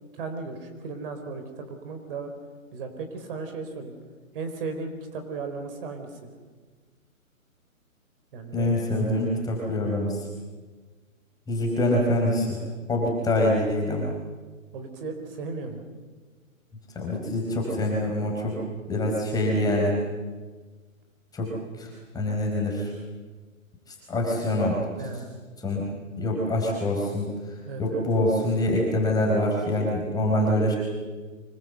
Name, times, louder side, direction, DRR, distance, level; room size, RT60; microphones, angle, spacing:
voice 1, 0.1-2.3 2.7-3.9 4.3-6.3 8.3-9.3 14.7-15.8 24.9-25.3 27.7-28.0, right 4 dB, 40° right, 6 dB, 4.3 m, -36 dB
voice 2, 8.5-10.2 11.5-12.6 12.9-14.1 16.9-18.5 18.9-20.0 21.3-21.5 21.8-21.9 22.1-22.9 24.1-24.8 25.6-25.8 26.2-27.3 27.8-30.8, left 1 dB, 10° left, -1 dB, 4.7 m, -25 dB
25.5 x 22.5 x 8.0 m, 1.4 s
hypercardioid pair, 150°, 42 cm